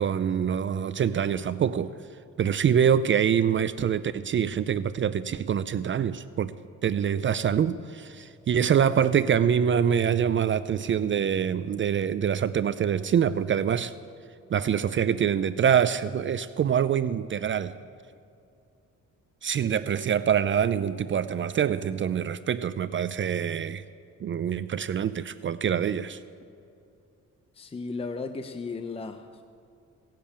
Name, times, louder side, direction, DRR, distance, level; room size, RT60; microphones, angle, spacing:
voice 1, 0.0-1.9 2.4-6.5 6.8-13.9 14.5-17.7 19.4-23.8 24.2-26.2, right 8 dB, 40° right, 14 dB, 0.5 m, -25 dB
voice 2, 27.5-29.5, left 4 dB, 20° left, 8 dB, 0.7 m, -35 dB
17.0 x 7.4 x 8.7 m, 2.6 s
cardioid pair, 90°, 30 cm